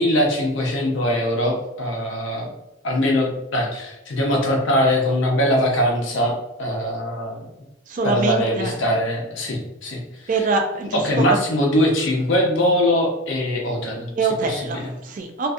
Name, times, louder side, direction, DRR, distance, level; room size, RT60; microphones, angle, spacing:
voice 1, 0.0-2.5 2.8-7.5 8.0-10.4 10.9-14.1 14.4-14.9, left 1 dB, 75° left, 0 dB, 0.7 m, -22 dB
voice 2, 7.9-8.7 10.3-11.4 14.2-15.5, right 3 dB, 45° right, 4 dB, 0.3 m, -24 dB
2.5 x 2.3 x 2.5 m, 0.90 s
head